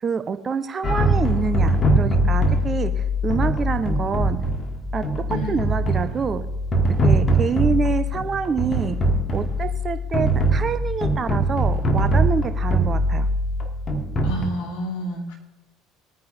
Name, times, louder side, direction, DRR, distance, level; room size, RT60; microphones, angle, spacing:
voice 1, 0.0-4.4 4.9-5.0 5.3-6.5 7.0-9.0 9.3-13.3, right 5 dB, 30° right, 10 dB, 0.7 m, -26 dB
sound 1, 0.8-14.5, right 1 dB, 30° left, 1.9 m, -22 dB
voice 2, 5.3-5.8 14.2-15.3, left 1 dB, 65° left, -3 dB, 2.8 m, -30 dB
21.5 x 9.6 x 2.6 m, 1.0 s
figure-of-eight pair, 60°, 0 cm